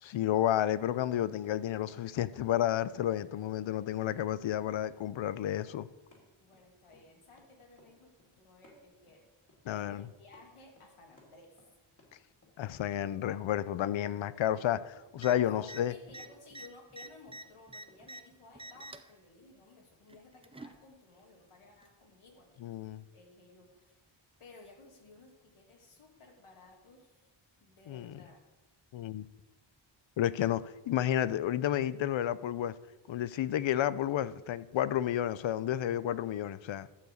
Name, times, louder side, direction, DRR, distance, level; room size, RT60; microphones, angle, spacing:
voice 1, 0.0-5.9 9.7-10.1 12.6-15.9 22.6-23.0 27.9-28.1 28.9-29.3 30.2-32.7 33.1-36.9, left 11 dB, 65° left, 0.6 m, -31 dB
Run, 1.4-18.9, left 2 dB, 40° left, 2.9 m, -64 dB
voice 2, 6.4-9.3 9.6-11.6 15.4-24.0 24.4-27.3 27.6-28.4, left 3 dB, 90° left, 2.3 m, -57 dB
sound 1, 15.2-15.3 15.6-15.8 16.1-18.2 18.5-19.1 20.1-20.8 21.8-21.9, right 1 dB, 15° right, 0.4 m, -47 dB
12.0 x 4.7 x 7.9 m
wide cardioid pair, 145°, 49 cm